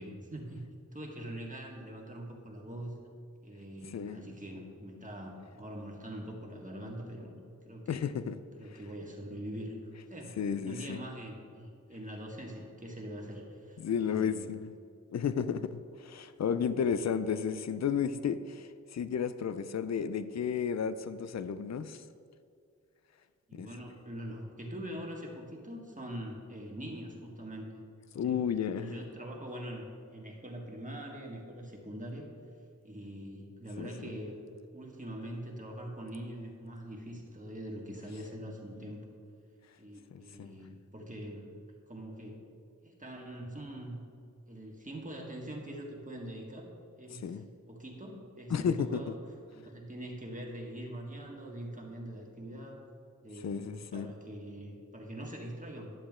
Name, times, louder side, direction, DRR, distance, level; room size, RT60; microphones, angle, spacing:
voice 1, 0.0-2.9 3.4-8.0 8.6-9.7 10.1-10.4 10.6-14.5 17.0-17.4 23.5-27.8 28.2-28.4 28.8-32.3 32.8-34.4 34.7-39.1 39.8-41.5 41.9-42.4 42.8-44.0 44.5-46.7 47.0-47.4 47.7-49.2 49.5-52.8 53.2-55.9, right 1 dB, 25° right, -1 dB, 1.7 m, -43 dB
voice 2, 7.9-8.4 10.4-11.0 13.8-14.7 15.1-22.0 23.6-23.7 28.1-29.0 33.8-34.1 40.1-40.5 47.2-47.4 48.5-49.0 53.4-54.1, left 7 dB, 60° left, 12 dB, 0.4 m, -33 dB
10.5 x 7.2 x 3.7 m, 2.5 s
wide cardioid pair, 50°, 30 cm